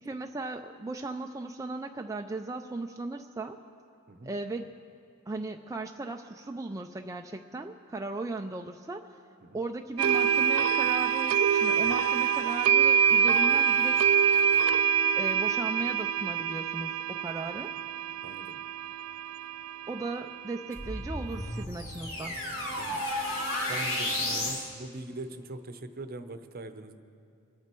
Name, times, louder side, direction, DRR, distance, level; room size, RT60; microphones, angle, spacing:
voice 1, 0.0-3.6 4.2-4.6 5.3-9.1 9.5-14.0 15.2-17.7 19.9-22.4, right 2 dB, 15° right, 4 dB, 0.4 m, -37 dB
sound 1, 10.0-21.6, right 8 dB, 80° right, 0.4 m, -26 dB
voice 2, 17.3-17.6 18.2-18.6 22.7-23.0 23.7-26.9, right 2 dB, 45° right, 9 dB, 0.8 m, -42 dB
sound 2, 20.7-24.7, left 1 dB, 80° left, 3.3 m, -32 dB
25.5 x 10.0 x 4.5 m, 2.5 s
head